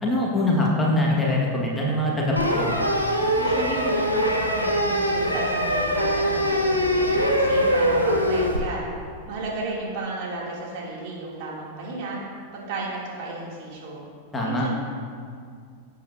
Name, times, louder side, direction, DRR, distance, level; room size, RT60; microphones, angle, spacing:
voice 1, 0.0-2.7 14.3-14.7, left 1 dB, 15° left, -3 dB, 1.9 m, -23 dB
sound 1, 2.4-8.6, equal, 85° left, 1.3 m, -22 dB
voice 2, 3.3-8.8 9.2-12.2 12.5-14.0 14.4-14.7, right 2 dB, 45° right, -5 dB, 2.9 m, -33 dB
17.0 x 8.3 x 2.8 m, 2.1 s
figure-of-eight pair, 90°, 0 cm